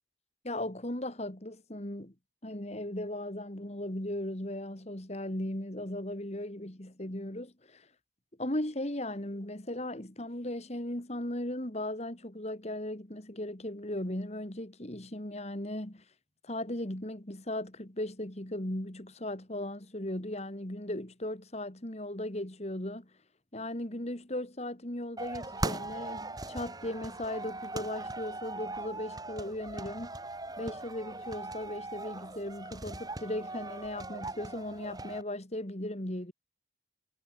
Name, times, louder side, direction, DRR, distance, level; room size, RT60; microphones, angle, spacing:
voice 1, 0.4-2.1 2.4-7.9 8.4-16.0 16.4-23.1 23.5-30.1 30.6-36.3, left 1 dB, 35° left, 2.4 m, -37 dB
sound 1, 25.2-35.2, right 2 dB, 20° right, 3.0 m, -40 dB
head